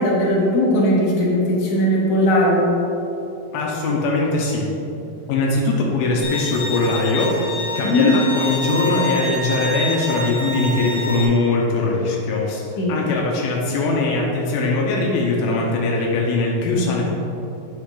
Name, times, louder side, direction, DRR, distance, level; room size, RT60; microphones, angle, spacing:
voice 1, 0.0-2.6 7.8-8.1 12.8-13.0, left 1 dB, 60° left, -6 dB, 2.8 m, -18 dB
voice 2, 3.5-4.7 5.3-17.2, left 2 dB, 85° left, -2 dB, 2.7 m, -21 dB
Bowed string instrument, 6.2-11.2, left 2 dB, 40° left, 1.1 m, -27 dB
8.9 x 6.3 x 3.8 m, 3.0 s
omnidirectional pair, 4.1 m